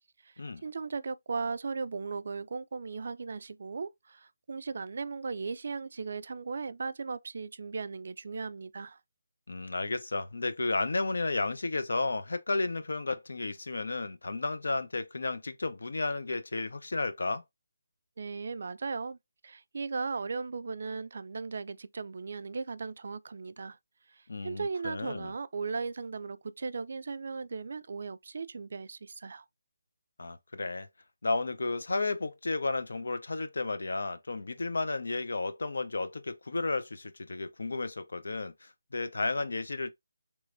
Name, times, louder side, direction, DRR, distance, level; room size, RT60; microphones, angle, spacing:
voice 1, 0.6-9.0 18.2-19.2 19.4-23.8 24.1-29.5, right 4 dB, 55° right, 0.3 m, -37 dB
voice 2, 9.5-17.4 24.3-25.3 30.2-30.9 31.2-39.9, left 3 dB, 70° left, 0.6 m, -33 dB
3.4 x 3.1 x 2.5 m
figure-of-eight pair, 165°, 0 cm